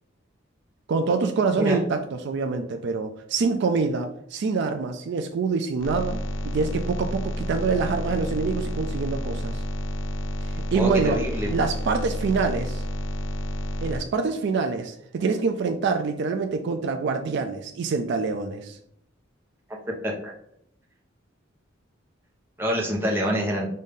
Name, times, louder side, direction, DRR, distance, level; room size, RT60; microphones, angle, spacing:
voice 1, 0.9-6.2 6.5-9.6 10.7-11.2 11.5-12.8 13.8-18.8, right 4 dB, 60° right, 6 dB, 0.4 m, -25 dB
voice 2, 1.5-1.8 10.7-11.5 20.0-20.3 22.6-23.7, equal, 10° right, -2 dB, 1.0 m, -26 dB
sound 1, 5.8-14.0, equal, 85° left, 0.7 m, -30 dB
5.3 x 2.7 x 3.6 m, 0.71 s
head